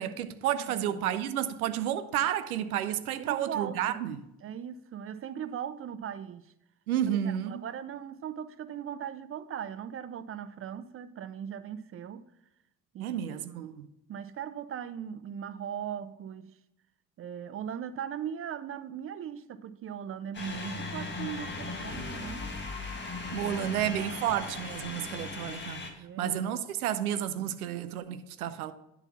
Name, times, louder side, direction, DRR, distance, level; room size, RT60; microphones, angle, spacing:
voice 1, 0.0-4.2 6.9-7.6 13.0-13.9 23.3-25.8 26.2-28.7, right 10 dB, 85° right, 0.6 m, -31 dB
voice 2, 0.6-1.0 3.2-6.5 7.1-12.3 12.9-13.6 14.1-16.6 17.2-22.5 26.0-26.4, right 9 dB, 35° right, 0.4 m, -39 dB
sound 1, 20.3-25.9, left 3 dB, 25° left, 1.8 m, -38 dB
10.5 x 4.1 x 5.6 m
hypercardioid pair, 55°, 43 cm